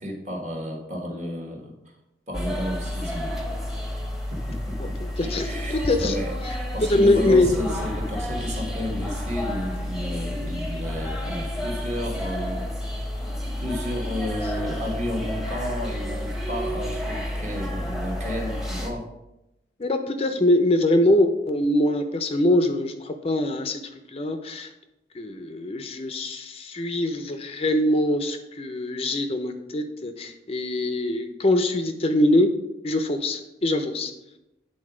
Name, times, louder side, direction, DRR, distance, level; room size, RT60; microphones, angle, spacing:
voice 1, 0.0-1.7 2.3-3.4 4.3-5.0 5.2-12.6 13.1-19.1, left 1 dB, 40° right, 0 dB, 1.4 m, -32 dB
sound 1, 2.3-18.9, left 1 dB, 5° right, 0.9 m, -30 dB
voice 2, 5.2-6.1 6.8-7.5 19.8-23.8 24.1-24.7 25.1-32.5 32.8-34.1, left 1 dB, 30° left, 7 dB, 0.5 m, -23 dB
8.5 x 3.9 x 4.9 m, 0.92 s
head